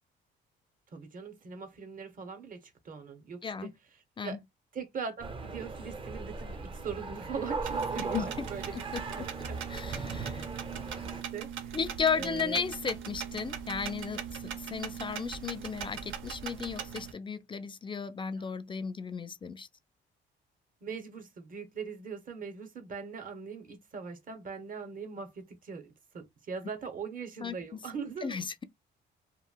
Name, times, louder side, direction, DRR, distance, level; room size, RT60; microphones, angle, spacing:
voice 1, 0.9-3.7 4.2-4.4 4.7-8.8 9.1-9.6 10.8-11.8 12.1-12.6 18.4-18.5 20.8-25.9 26.1-28.4, right 5 dB, 45° right, 0.8 m, -41 dB
voice 2, 3.4-3.7 4.2-4.4 8.1-8.3 8.7-9.2 9.7-10.4 11.7-14.2 14.6-19.7 27.4-27.6 28.2-28.6, left 6 dB, 25° left, 0.4 m, -34 dB
sound 1, 5.2-11.2, right 4 dB, 25° right, 0.6 m, -38 dB
sound 2, 7.6-17.1, right 8 dB, 75° right, 0.6 m, -40 dB
2.9 x 2.6 x 2.3 m
cardioid pair, 90°, 20 cm